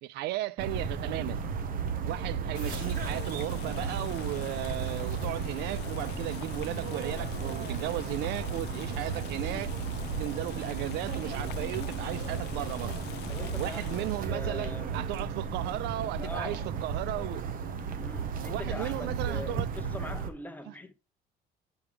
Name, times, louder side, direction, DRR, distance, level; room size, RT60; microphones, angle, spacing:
voice 1, 0.0-1.4 2.1-9.7 10.2-12.9 13.6-17.5 18.5-19.7 20.7-20.8, right 16 dB, 80° right, 0.4 m, -35 dB
sound 1, 0.6-20.3, right 6 dB, 55° right, 1.0 m, -34 dB
Boiling, 2.5-14.3, left 14 dB, 85° left, 0.4 m, -43 dB
voice 2, 13.3-15.4 16.2-16.7 18.0-20.9, left 2 dB, 10° left, 0.9 m, -42 dB
7.0 x 4.8 x 3.2 m
cardioid pair, 110°, 17 cm